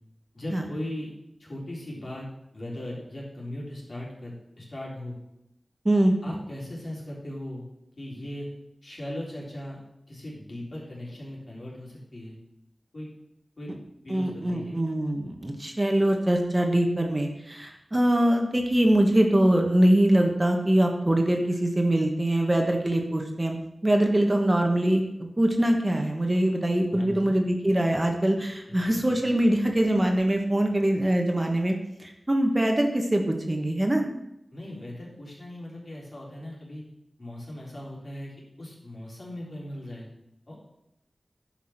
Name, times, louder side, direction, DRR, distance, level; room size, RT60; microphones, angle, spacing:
voice 1, 0.3-1.1 1.4-2.3 2.5-5.2 6.2-7.7 8.0-8.5 8.8-9.8 10.1-12.4 12.9-13.1 13.6-13.7 14.0-14.8 26.9-27.3 28.7-28.8 29.1-29.2 34.5-36.8 37.2-40.1 40.5-40.7, left 1 dB, 55° left, -4 dB, 4.0 m, -38 dB
voice 2, 5.8-6.1 14.1-23.6 23.8-34.0, right 1 dB, 25° right, 3 dB, 1.3 m, -23 dB
10.5 x 6.0 x 5.9 m, 0.83 s
wide cardioid pair, 70°, 0 cm